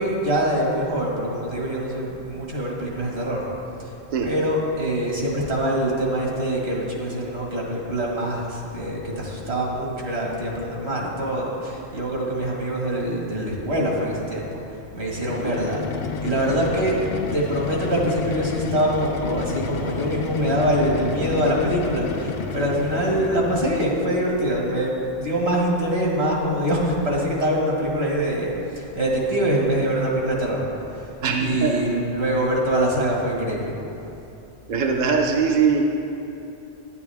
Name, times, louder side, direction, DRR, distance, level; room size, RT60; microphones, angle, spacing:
voice 1, 0.0-3.5 3.8-3.9 4.2-14.5 14.9-15.8 16.2-17.0 17.3-33.7, right 1 dB, 70° right, -3 dB, 2.1 m, -24 dB
sound 1, 15.2-23.9, left 4 dB, 70° left, 0.8 m, -30 dB
voice 2, 31.2-31.7 34.7-35.8, right 6 dB, 50° right, 1 dB, 0.7 m, -21 dB
10.5 x 9.8 x 3.5 m, 2.9 s
omnidirectional pair, 1.1 m